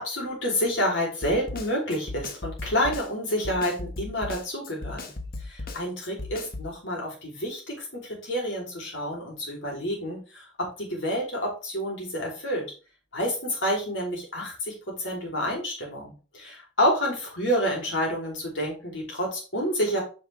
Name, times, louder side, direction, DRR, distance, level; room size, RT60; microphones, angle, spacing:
voice 1, 0.0-5.1 5.5-12.6 13.1-14.7 15.0-20.0, equal, 75° left, -1 dB, 3.9 m, -29 dB
Snare drum, 1.2-6.7, left 2 dB, 55° left, 1.2 m, -36 dB
8.3 x 5.7 x 3.6 m, 0.34 s
head